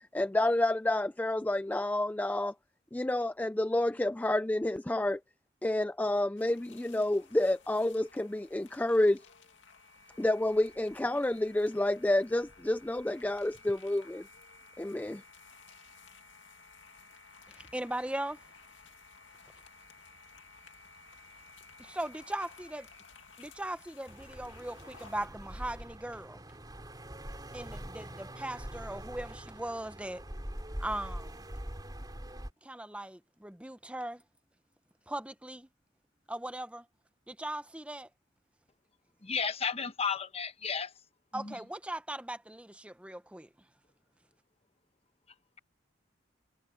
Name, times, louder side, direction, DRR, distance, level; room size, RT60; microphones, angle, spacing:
voice 1, 0.1-2.5 2.9-5.2 5.6-9.2 10.2-14.3 14.8-15.2, left 1 dB, 10° left, 0.4 m, -29 dB
sound 1, 6.4-25.3, left 4 dB, 85° left, 2.2 m, -56 dB
voice 2, 17.5-18.4 21.8-22.8 23.4-26.4 27.5-30.2 30.8-31.4 32.6-34.2 35.1-35.7 36.3-36.9 37.3-38.1 41.3-43.5, right 1 dB, 5° right, 0.8 m, -39 dB
sound 2, 24.1-32.5, right 1 dB, 20° right, 3.5 m, -43 dB
voice 3, 39.2-40.9 41.3-41.5, left 6 dB, 35° left, 1.1 m, -33 dB
head